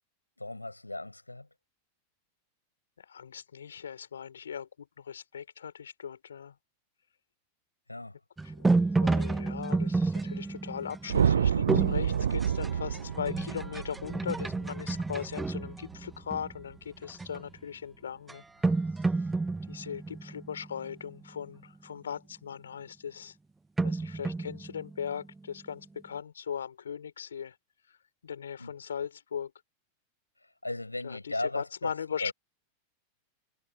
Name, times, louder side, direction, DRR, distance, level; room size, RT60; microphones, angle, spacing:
voice 1, 0.4-1.5 7.9-8.1 28.6-28.7 30.6-31.9 32.2-32.3, left 2 dB, 85° left, 6.3 m, -36 dB
voice 2, 3.1-4.7 5.0-6.5 8.4-8.7 9.0-18.4 19.7-23.3 23.8-27.5 28.2-29.5 31.0-32.3, left 7 dB, 70° left, 4.3 m, -39 dB
sound 1, 8.4-16.6 17.1-17.5 18.3-18.4 18.6-21.2 23.8-25.6, right 3 dB, 10° right, 0.4 m, -31 dB
sound 2, 11.1-15.5, right 8 dB, 65° right, 0.7 m, -28 dB
figure-of-eight pair, 90°, 0 cm